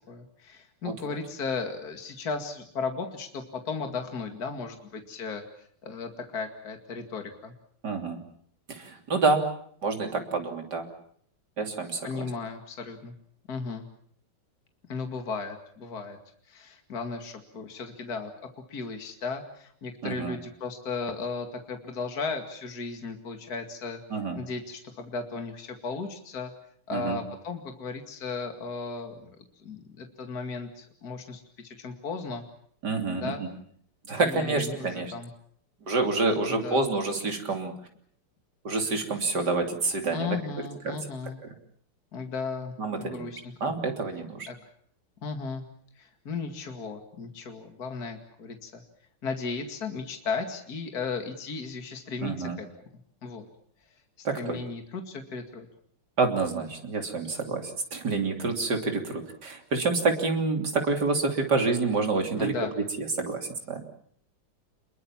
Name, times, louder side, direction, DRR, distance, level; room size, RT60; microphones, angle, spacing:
voice 1, 0.1-5.4 5.8-7.5 12.0-13.2 13.5-13.8 14.9-16.2 16.5-18.3 18.7-24.0 24.3-26.5 26.9-29.3 29.6-32.4 33.1-33.4 34.2-35.3 36.6-36.9 40.1-41.4 42.1-43.7 44.5-44.6 45.2-45.6 46.0-48.8 49.2-52.7 53.2-53.5 54.2-55.7 62.4-62.7, left 4 dB, 45° left, 5 dB, 2.7 m, -35 dB
voice 2, 7.8-8.2 8.7-9.4 9.8-10.9 11.6-12.3 20.0-20.4 24.1-24.4 26.9-27.2 32.8-33.5 34.1-35.1 35.9-37.7 38.7-40.4 40.9-41.0 42.8-43.3 43.6-44.5 52.2-52.6 54.2-54.6 56.2-62.5 63.0-63.8, right 3 dB, 50° right, 4 dB, 3.7 m, -28 dB
27.5 x 22.0 x 7.3 m, 0.62 s
omnidirectional pair, 2.4 m